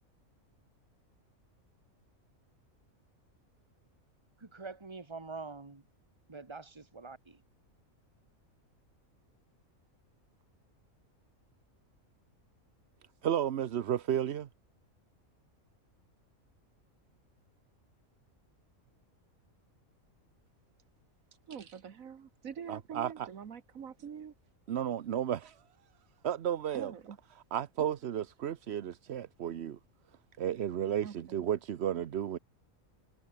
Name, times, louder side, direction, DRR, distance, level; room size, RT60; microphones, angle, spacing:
voice 1, 4.4-5.8 6.3-7.4, right 4 dB, 20° right, 1.7 m, -45 dB
voice 2, 13.2-14.5 22.7-23.3 24.7-25.6 26.2-26.9 27.5-29.8 30.4-32.4, right 10 dB, 55° right, 0.9 m, -33 dB
voice 3, 21.5-24.3 26.7-27.2 31.0-31.5, right 7 dB, 75° right, 1.7 m, -45 dB
omnidirectional pair, 1.4 m